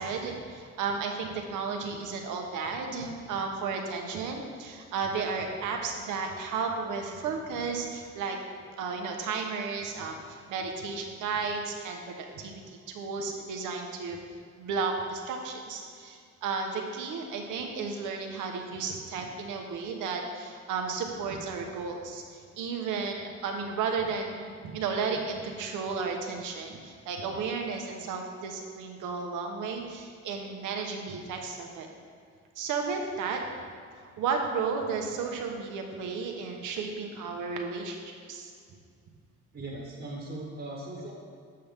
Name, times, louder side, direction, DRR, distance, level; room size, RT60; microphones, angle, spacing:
voice 1, 0.0-8.4 8.8-14.2 14.6-31.9 32.6-33.4 34.0-38.5, right 5 dB, 85° right, 2 dB, 0.9 m, -33 dB
voice 2, 39.5-41.1, right 2 dB, 35° right, -3 dB, 1.3 m, -39 dB
7.7 x 5.6 x 3.5 m, 2.2 s
cardioid pair, 90°, 30 cm